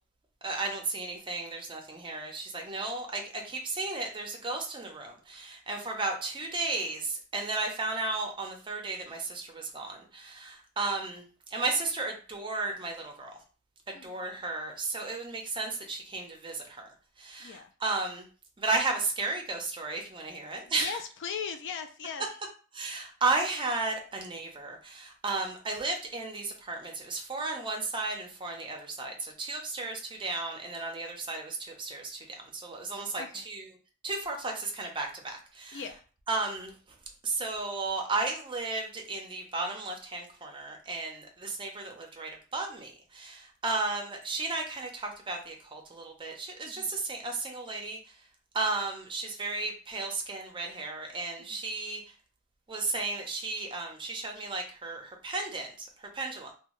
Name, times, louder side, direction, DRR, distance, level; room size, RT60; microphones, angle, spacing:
voice 1, 0.4-11.2 11.5-13.3 14.0-16.9 17.2-18.3 18.6-21.0 22.7-33.6 34.0-35.8 36.3-36.7 37.2-48.0 48.5-52.0 52.7-55.9 56.1-56.5, right 3 dB, 20° right, 2 dB, 0.6 m, -34 dB
voice 2, 13.9-14.4 17.4-17.7 20.8-22.2 33.2-33.4 35.7-36.0 46.6-46.9 51.4-51.6, left 6 dB, 55° left, 7 dB, 0.4 m, -39 dB
2.6 x 2.2 x 3.0 m, 0.38 s
head